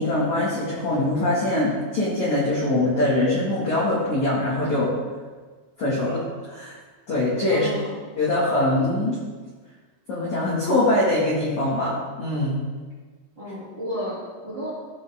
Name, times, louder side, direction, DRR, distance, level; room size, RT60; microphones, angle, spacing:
voice 1, 0.0-4.9 5.8-6.8 7.1-7.7 8.2-9.2 10.1-12.5, left 1 dB, 60° left, -7 dB, 2.0 m, -23 dB
voice 2, 7.5-8.0 13.4-14.7, equal, 30° right, -9 dB, 2.2 m, -32 dB
16.0 x 5.6 x 3.5 m, 1.4 s
omnidirectional pair, 5.9 m